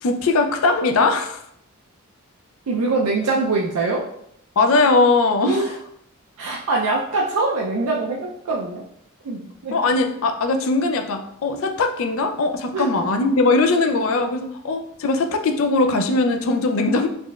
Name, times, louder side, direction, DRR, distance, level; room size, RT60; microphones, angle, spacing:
voice 1, 0.0-1.4 4.6-5.7 9.7-17.1, left 3 dB, 65° left, 6 dB, 0.4 m, -20 dB
voice 2, 2.7-4.0 5.4-5.7 6.4-8.8 9.2-9.8 12.7-13.1, right 3 dB, 85° right, -2 dB, 0.5 m, -23 dB
4.1 x 3.1 x 2.3 m, 0.71 s
head